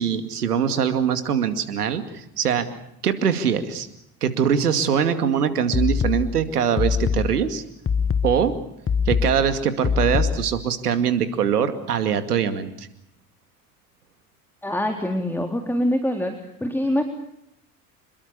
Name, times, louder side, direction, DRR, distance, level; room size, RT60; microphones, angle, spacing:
voice 1, 0.0-2.7 3.0-3.9 4.2-7.6 8.2-8.6 9.1-12.9, right 8 dB, 85° right, 10 dB, 2.5 m, -22 dB
sound 1, 5.7-10.7, left 6 dB, 30° left, 1.8 m, -24 dB
voice 2, 14.6-17.0, left 1 dB, 5° left, 4 dB, 3.7 m, -24 dB
27.5 x 22.0 x 6.9 m, 0.77 s
hypercardioid pair, 70°, 45 cm